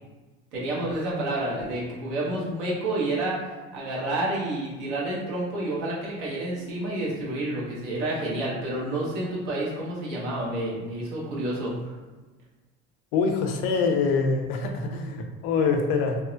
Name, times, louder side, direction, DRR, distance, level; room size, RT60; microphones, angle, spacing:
voice 1, 0.5-3.4 3.7-11.7, right 1 dB, 85° right, -6 dB, 1.0 m, -29 dB
voice 2, 13.1-16.2, left 4 dB, 85° left, 3 dB, 0.5 m, -24 dB
2.6 x 2.1 x 2.4 m, 1.2 s
supercardioid pair, 85°, 30 cm